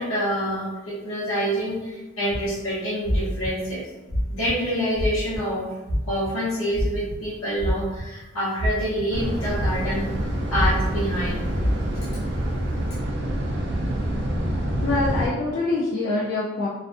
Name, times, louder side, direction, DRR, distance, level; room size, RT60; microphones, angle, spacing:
voice 1, 0.0-3.9 4.3-5.7 6.1-10.1 10.5-11.4, equal, 80° left, -9 dB, 0.7 m, -27 dB
sound 1, 2.3-2.5 3.0-3.5 4.1-4.5 4.9-5.4 5.8-6.3 6.7-7.2 7.6-8.2 8.6-9.0 9.6-10.0 10.5-11.0 11.6-12.0, equal, 35° right, 0.8 m, -25 dB
sound 2, 9.1-15.3, right 1 dB, 55° right, 0.4 m, -26 dB
voice 2, 14.8-16.7, left 2 dB, 50° left, -6 dB, 0.3 m, -25 dB
2.4 x 2.4 x 2.4 m, 1.1 s
head